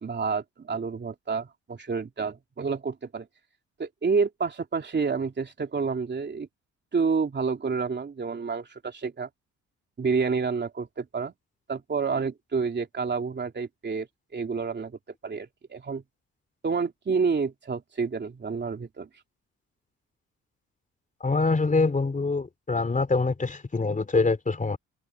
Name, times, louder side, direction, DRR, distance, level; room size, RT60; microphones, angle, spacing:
voice 1, 0.0-3.3 3.8-6.5 6.9-9.3 10.0-11.3 11.7-14.1 14.3-15.0 15.2-16.0 16.6-19.1, right 5 dB, 35° right, 3.3 m, -29 dB
voice 2, 21.2-24.8, left 3 dB, 25° left, 3.5 m, -25 dB
cardioid pair, 90°, 30 cm